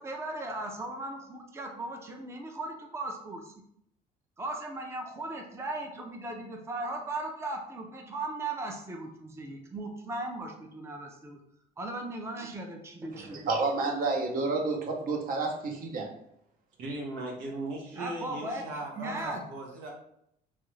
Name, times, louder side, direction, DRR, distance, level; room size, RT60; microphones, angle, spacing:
voice 1, 0.0-3.5 4.4-11.4 11.8-13.4 18.0-18.6 19.0-19.5, right 2 dB, 15° right, 2 dB, 0.5 m, -37 dB
voice 2, 13.1-16.1, right 3 dB, 55° right, 2 dB, 0.8 m, -30 dB
voice 3, 16.8-19.9, right 2 dB, 90° right, 0 dB, 0.9 m, -38 dB
3.1 x 2.4 x 3.1 m, 0.74 s
cardioid pair, 110°, 17 cm